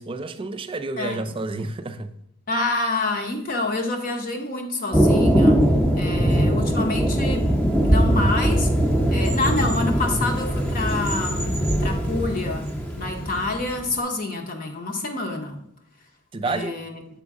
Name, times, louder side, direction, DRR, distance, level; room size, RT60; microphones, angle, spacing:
voice 1, 0.0-2.1 16.3-16.7, right 3 dB, 25° right, 0.3 m, -30 dB
voice 2, 2.5-5.6 5.9-8.7 9.1-12.6 12.9-15.6 16.4-17.0, left 2 dB, 40° left, 0.8 m, -27 dB
Thunder, 4.9-13.9, equal, 10° left, 0.7 m, -21 dB
7.0 x 5.0 x 3.7 m
head